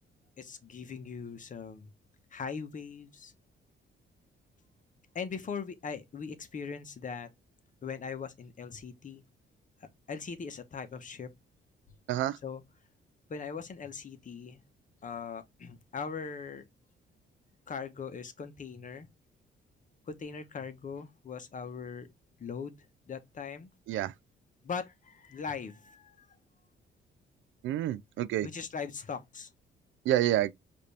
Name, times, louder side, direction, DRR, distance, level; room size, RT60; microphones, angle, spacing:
voice 1, 0.4-1.9 2.3-3.3 5.1-7.3 7.8-9.2 10.1-11.3 12.4-12.6 13.3-14.6 15.0-16.7 17.7-19.1 20.1-22.1 22.4-22.8 23.1-23.7 24.6-26.3 28.4-29.5, left 5 dB, 40° left, 1.0 m, -40 dB
voice 2, 27.6-28.5 30.1-30.5, right 12 dB, 75° right, 0.4 m, -28 dB
5.0 x 2.7 x 3.3 m
cardioid pair, 90°, 20 cm